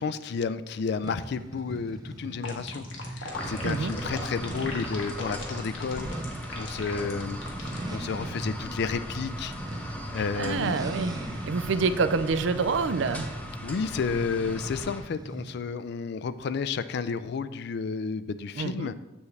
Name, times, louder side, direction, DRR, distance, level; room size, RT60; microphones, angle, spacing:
voice 1, 0.0-6.1 6.5-9.5 10.1-10.8 13.6-18.9, left 5 dB, 60° left, 13 dB, 0.4 m, -31 dB
sound 1, 1.0-15.7, right 1 dB, 20° right, 0.6 m, -40 dB
sound 2, 2.4-7.9, left 3 dB, 85° left, 1.4 m, -38 dB
sound 3, 3.3-15.0, equal, 10° left, 0.8 m, -39 dB
voice 2, 3.6-4.0 10.1-13.3 18.6-18.9, right 4 dB, 70° right, 13 dB, 0.4 m, -27 dB
7.0 x 6.9 x 3.3 m, 1.0 s
head